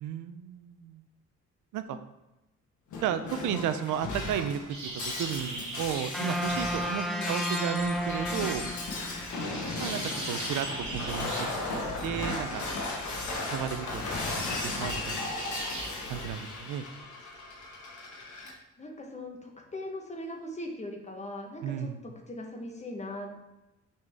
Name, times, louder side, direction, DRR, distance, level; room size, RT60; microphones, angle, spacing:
voice 1, 0.0-1.0 1.7-2.0 3.0-8.7 9.8-10.7 10.9-11.5 11.7-12.6 13.5-14.0 14.5-15.3 16.1-16.8 21.6-22.0, right 9 dB, 80° right, 10 dB, 0.5 m, -33 dB
Shatter, 2.9-18.5, left 2 dB, 70° left, 1.3 m, -36 dB
sound 1, 4.7-15.9, right 2 dB, 65° right, 2.1 m, -43 dB
sound 2, 6.1-9.4, equal, ahead, 0.5 m, -32 dB
voice 2, 7.1-7.4 18.8-23.4, left 1 dB, 20° left, 2 dB, 1.1 m, -40 dB
6.5 x 4.1 x 3.5 m, 0.98 s
cardioid pair, 90°, 30 cm